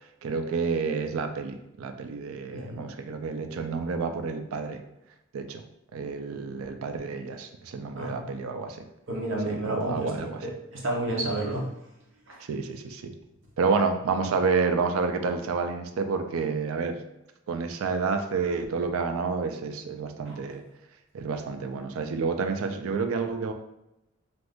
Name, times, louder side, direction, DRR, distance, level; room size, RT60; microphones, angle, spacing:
voice 1, 0.2-4.8 5.3-5.6 5.9-8.8 9.5-10.5 12.5-13.1 13.6-17.0 17.5-20.6 21.1-23.5, right 4 dB, 85° right, 6 dB, 0.4 m, -29 dB
voice 2, 2.5-2.8 7.9-8.2 9.1-10.1 10.4-11.7 12.3-12.4, right 1 dB, 65° right, -2 dB, 0.8 m, -30 dB
2.5 x 2.4 x 3.5 m, 0.88 s
head